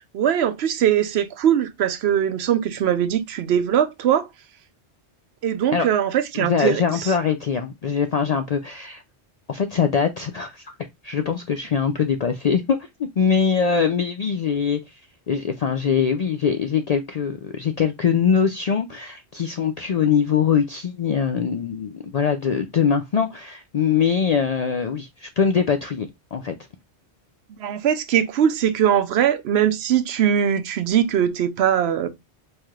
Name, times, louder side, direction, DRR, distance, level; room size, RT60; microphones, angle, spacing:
voice 1, 0.1-4.3 5.4-7.1 27.6-32.1, right 9 dB, 75° right, 0.8 m, -21 dB
voice 2, 6.3-9.0 9.5-10.7 11.0-12.9 13.2-15.0 15.3-26.5, left 6 dB, 60° left, 0.4 m, -22 dB
4.5 x 3.2 x 2.3 m
omnidirectional pair, 1.1 m